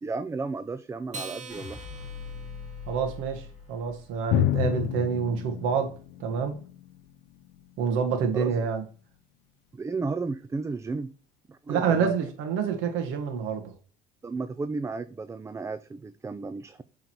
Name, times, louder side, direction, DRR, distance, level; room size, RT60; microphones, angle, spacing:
voice 1, 0.0-1.8 8.3-8.6 9.7-11.1 11.5-12.1 14.2-16.8, right 4 dB, 15° right, 0.4 m, -33 dB
Acoustic guitar, 1.1-3.8, right 3 dB, 35° right, 1.7 m, -44 dB
sound 1, 1.5-7.7 8.0-8.6, left 6 dB, 40° left, 2.7 m, -45 dB
voice 2, 2.9-5.9 6.2-6.6 7.8-8.8 11.7-13.7, right 6 dB, 80° right, 1.7 m, -27 dB
Drum, 4.3-7.8, left 13 dB, 75° left, 0.7 m, -30 dB
7.7 x 3.9 x 4.5 m
cardioid pair, 120°, 20 cm